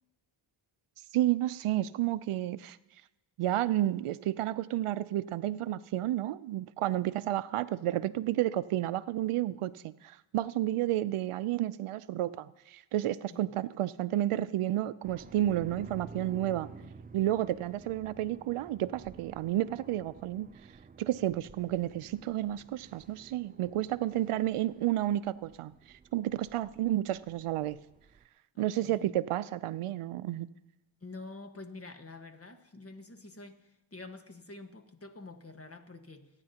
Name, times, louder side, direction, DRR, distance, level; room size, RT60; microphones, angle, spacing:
voice 1, 1.1-2.8 3.4-16.7 17.1-20.5 21.0-25.7 26.1-27.8 28.6-30.5, right 13 dB, 85° right, 16 dB, 0.6 m, -31 dB
sound 1, 15.0-28.3, right 5 dB, 20° right, 0.4 m, -52 dB
voice 2, 16.8-17.1 28.5-29.2 31.0-36.3, left 3 dB, 30° left, 6 dB, 1.4 m, -48 dB
27.0 x 9.8 x 2.9 m, 0.98 s
cardioid pair, 70°, 50 cm